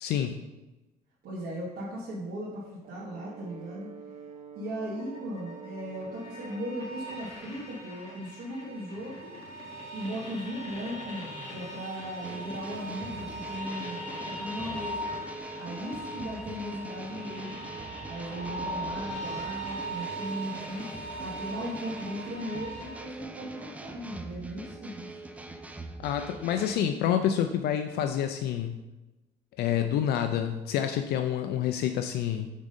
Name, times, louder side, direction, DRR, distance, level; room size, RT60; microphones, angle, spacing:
voice 1, 0.0-0.4 26.0-28.8 29.6-32.5, left 9 dB, 70° left, 7 dB, 0.4 m, -28 dB
voice 2, 1.2-3.9 4.5-9.4 9.9-15.2 15.6-17.7 18.1-20.9 21.2-25.1, equal, 65° right, -6 dB, 1.4 m, -37 dB
Brass instrument, 2.8-7.0, right 6 dB, 40° right, 0.7 m, -46 dB
sound 1, 4.9-23.0, right 1 dB, 40° left, 1.6 m, -40 dB
sound 2, 12.2-26.8, right 2 dB, 10° right, 0.4 m, -43 dB
5.3 x 3.7 x 5.2 m, 1.1 s
cardioid pair, 110°, 17 cm